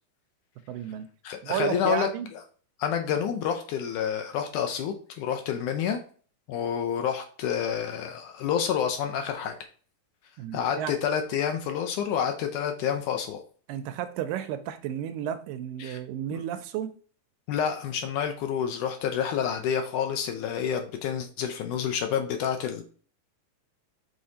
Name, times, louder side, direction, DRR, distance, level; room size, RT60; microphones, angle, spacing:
voice 1, 0.7-1.1 1.4-2.3 10.4-11.0 13.7-16.9, right 10 dB, 80° right, 2.2 m, -32 dB
voice 2, 1.2-2.1 2.8-6.0 6.5-9.6 10.5-13.4 15.8-16.0 16.3-16.4 17.5-22.8, left 8 dB, 75° left, 2.1 m, -28 dB
6.4 x 5.3 x 2.8 m
omnidirectional pair, 4.0 m